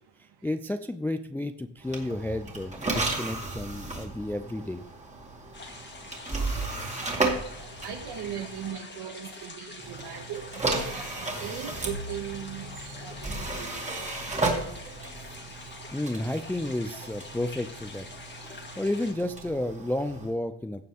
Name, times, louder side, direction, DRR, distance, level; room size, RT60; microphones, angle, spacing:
voice 1, 0.4-4.8 15.6-18.1 18.5-20.9, left 1 dB, 5° left, 9 dB, 0.3 m, -32 dB
sound 1, 1.8-8.7 9.8-20.3, right 2 dB, 15° right, 2.3 m, -34 dB
sound 2, 5.5-19.1, left 3 dB, 25° left, 1.9 m, -45 dB
voice 2, 6.9-16.0, right 9 dB, 60° right, 5 dB, 2.0 m, -40 dB
15.5 x 6.8 x 3.5 m, 0.75 s
cardioid pair, 125°, 45 cm